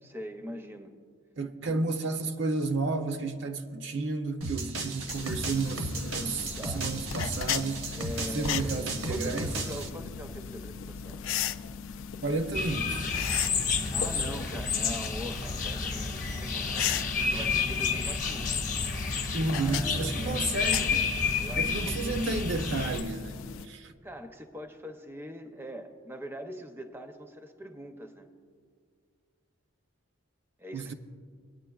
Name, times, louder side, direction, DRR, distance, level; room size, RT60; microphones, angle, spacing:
voice 1, 0.0-0.9 6.6-6.9 7.9-11.2 13.9-18.6 19.4-20.5 21.4-22.2 24.0-28.3 30.6-30.9, equal, 10° right, 0.5 m, -42 dB
voice 2, 1.4-7.9 8.3-9.5 12.2-13.1 19.3-21.2 21.6-23.9 30.7-30.9, right 3 dB, 55° right, 0.5 m, -32 dB
sound 1, 4.4-9.9, right 2 dB, 80° right, 1.0 m, -35 dB
sound 2, 5.1-23.7, left 8 dB, 70° left, 0.4 m, -38 dB
sound 3, 12.5-23.0, left 5 dB, 40° left, 0.9 m, -30 dB
19.5 x 9.4 x 2.3 m
head